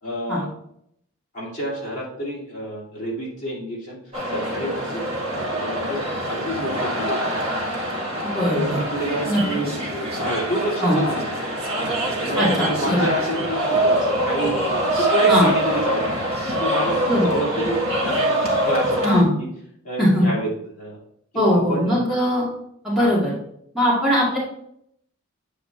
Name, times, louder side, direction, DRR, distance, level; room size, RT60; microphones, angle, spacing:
voice 1, 0.0-0.5 1.3-4.0 4.3-5.0 5.3-6.0 6.3-7.3 8.5-9.7 10.1-11.3 12.2-14.6 15.0-18.4 18.6-19.1 19.4-19.5 19.8-21.0 21.3-22.0 23.0-23.2, equal, 35° left, -6 dB, 2.7 m, -28 dB
sound 1, 4.1-19.2, right 1 dB, 25° right, 1.8 m, -24 dB
voice 2, 8.2-8.8 9.3-9.4 10.8-11.0 12.4-13.1 15.3-15.5 17.1-17.3 19.0-19.3 20.0-20.2 21.3-22.5 22.8-23.3 23.7-24.4, equal, ahead, -9 dB, 2.3 m, -20 dB
8.4 x 4.9 x 3.3 m, 0.70 s
head